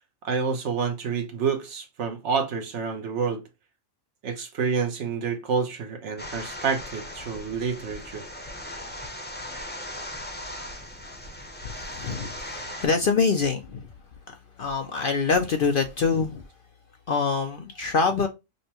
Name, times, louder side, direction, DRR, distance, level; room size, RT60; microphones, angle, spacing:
voice 1, 0.2-3.4 4.2-8.2, right 6 dB, 65° right, 1.1 m, -28 dB
sound 1, 6.2-12.9, left 1 dB, 10° left, 0.7 m, -38 dB
voice 2, 11.7-13.9 14.3-16.4 17.1-18.3, left 4 dB, 55° left, 0.6 m, -25 dB
5.3 x 2.2 x 2.9 m
omnidirectional pair, 1.4 m